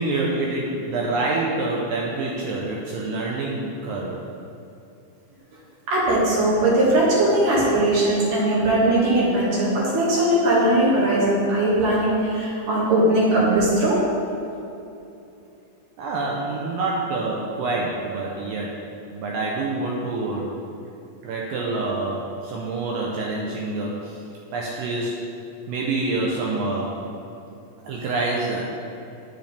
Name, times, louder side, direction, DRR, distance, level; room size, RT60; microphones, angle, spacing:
voice 1, 0.0-4.2 16.0-18.8 19.1-20.5 21.2-24.2 24.5-25.2 25.7-26.9 27.9-28.6, right 2 dB, 80° right, -3 dB, 2.1 m, -26 dB
voice 2, 5.9-14.0, right 1 dB, 60° right, -7 dB, 3.3 m, -19 dB
9.0 x 7.9 x 3.4 m, 2.7 s
omnidirectional pair, 4.6 m